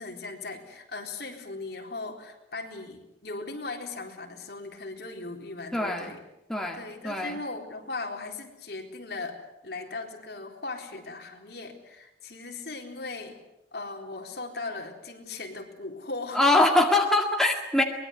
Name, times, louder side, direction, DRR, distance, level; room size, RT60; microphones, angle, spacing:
voice 1, 0.0-6.2 6.8-13.4 13.7-16.4, left 3 dB, 60° left, 2 dB, 4.1 m, -38 dB
voice 2, 5.7-6.1 6.5-7.4 16.3-17.8, left 2 dB, ahead, 1 dB, 2.0 m, -23 dB
24.0 x 21.0 x 8.1 m, 0.89 s
head